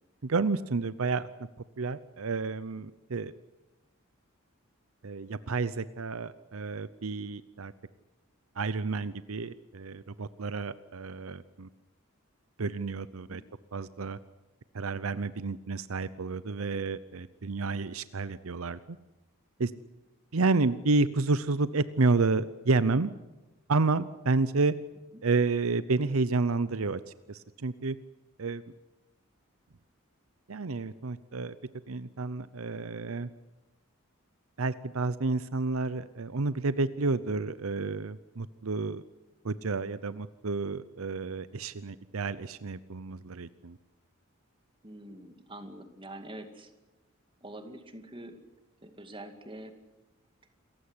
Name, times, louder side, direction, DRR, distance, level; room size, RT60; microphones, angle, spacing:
voice 1, 0.2-1.3 1.8-3.3 5.0-7.7 8.6-11.7 12.6-13.4 13.7-14.2 14.7-19.0 19.6-19.7 20.3-23.1 23.7-24.7 25.2-27.0 27.3-28.0 28.4-28.6 30.5-31.6 31.9-33.3 34.6-39.0 39.4-43.8, right 3 dB, 75° right, 15 dB, 0.8 m, -30 dB
voice 2, 44.8-46.7 47.4-48.4 48.8-49.7, right 1 dB, 25° right, 7 dB, 2.4 m, -45 dB
28.0 x 15.5 x 9.8 m, 1.1 s
head